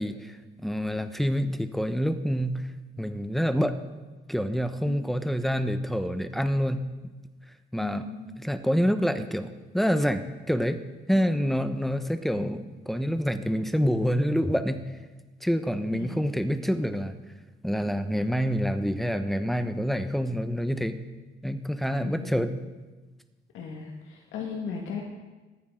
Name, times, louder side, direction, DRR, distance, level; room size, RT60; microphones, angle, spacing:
voice 1, 0.0-2.7 3.0-3.8 4.3-6.8 7.7-8.1 8.4-10.8 11.1-14.8 15.4-17.1 17.6-21.0 21.4-22.5, equal, ahead, 9 dB, 1.1 m, -27 dB
voice 2, 7.8-8.3 11.1-11.4 15.9-16.2 22.0-22.7 23.5-25.0, left 5 dB, 85° left, 0 dB, 1.9 m, -37 dB
25.5 x 9.6 x 3.9 m, 1.2 s
cardioid pair, 90°, 20 cm